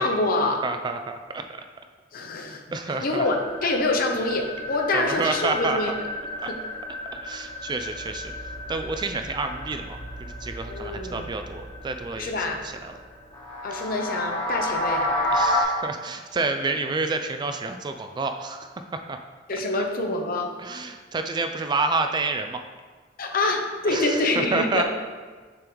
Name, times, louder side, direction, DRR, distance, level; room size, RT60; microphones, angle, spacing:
voice 1, 0.0-0.6 2.1-2.6 3.0-5.9 6.5-6.6 10.7-11.3 12.2-12.6 13.6-15.1 19.5-20.5 23.2-24.8, left 2 dB, 50° left, 3 dB, 0.7 m, -26 dB
voice 2, 0.6-1.4 2.7-3.2 4.9-5.8 6.4-6.5 7.2-12.3 12.6-12.9 15.3-18.7 19.1-19.2 19.5-19.6 20.6-22.6 23.9-24.8, right 3 dB, 25° right, 6 dB, 0.3 m, -29 dB
sound 1, 3.2-15.6, left 1 dB, 20° left, 1.1 m, -31 dB
7.0 x 3.0 x 5.1 m, 1.5 s
head